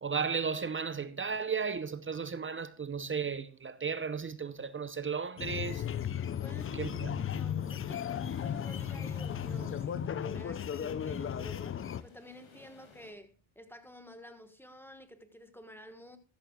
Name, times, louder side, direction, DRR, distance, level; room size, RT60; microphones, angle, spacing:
voice 1, 0.0-5.8 6.8-7.1, right 6 dB, 25° right, 0.7 m, -34 dB
sound 1, 5.4-12.0, left 9 dB, 30° left, 0.4 m, -35 dB
voice 2, 6.4-8.1 8.4-16.2, equal, 5° left, 1.4 m, -51 dB
sound 2, 7.1-12.3 12.8-13.0, right 1 dB, 50° right, 5.0 m, -52 dB
sound 3, 8.0-13.1, left 3 dB, 75° left, 6.7 m, -58 dB
13.5 x 13.0 x 2.3 m
cardioid pair, 90°, 48 cm